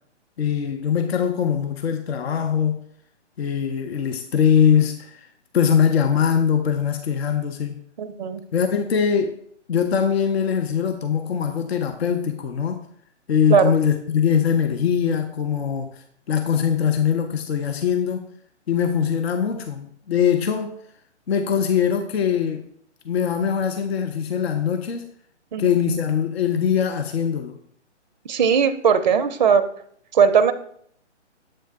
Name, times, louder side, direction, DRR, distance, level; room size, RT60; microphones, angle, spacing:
voice 1, 0.4-2.8 3.4-5.3 5.5-7.8 8.5-9.4 9.7-12.9 13.3-18.3 18.7-20.8 21.3-22.7 23.0-25.1 25.6-27.6, left 8 dB, 60° left, 0.6 m, -22 dB
voice 2, 8.0-8.4 13.5-13.7 25.5-25.7 28.3-29.6 30.1-30.5, right 7 dB, 40° right, 0.4 m, -18 dB
7.6 x 3.2 x 4.5 m
figure-of-eight pair, 140°, 35 cm